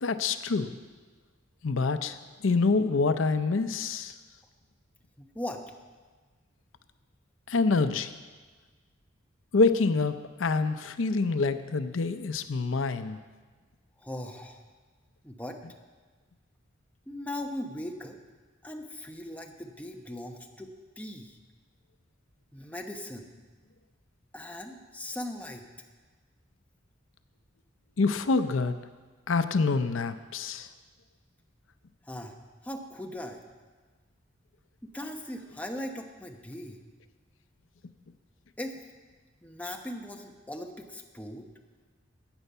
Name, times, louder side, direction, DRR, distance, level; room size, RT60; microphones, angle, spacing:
voice 1, 0.0-0.7 1.6-2.2 2.4-4.1 7.5-8.1 9.5-13.2 28.0-28.8 29.3-30.7, left 4 dB, 80° left, 10 dB, 0.6 m, -26 dB
voice 2, 5.2-5.6 14.0-14.6 15.2-15.6 17.1-18.2 18.6-21.4 22.5-23.3 24.3-25.6 32.0-32.4 32.6-33.4 34.8-36.8 38.6-38.8 39.4-41.5, left 1 dB, 10° left, 2 dB, 0.9 m, -39 dB
15.0 x 9.1 x 5.5 m, 1.4 s
head